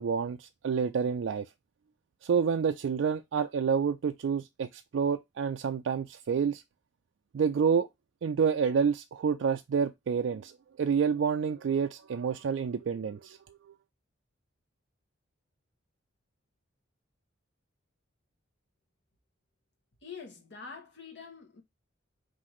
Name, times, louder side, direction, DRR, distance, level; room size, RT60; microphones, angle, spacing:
voice 1, 0.0-1.5 2.2-6.6 7.3-7.9 8.2-13.6, right 6 dB, 65° right, 0.3 m, -28 dB
voice 2, 20.0-21.6, left 5 dB, 60° left, 1.0 m, -45 dB
5.6 x 2.6 x 3.0 m
head